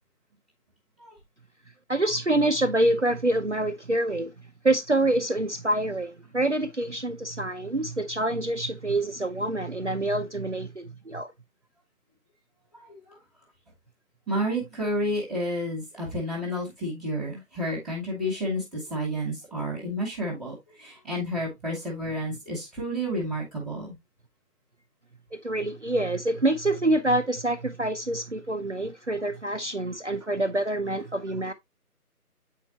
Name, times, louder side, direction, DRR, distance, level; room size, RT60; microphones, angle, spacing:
voice 1, 1.9-4.3 4.6-11.3 25.3-31.5, right 1 dB, 50° right, 0.6 m, -26 dB
voice 2, 12.7-13.2 14.3-24.0, equal, ahead, 1.0 m, -31 dB
8.2 x 4.6 x 2.7 m
figure-of-eight pair, 180°, 46 cm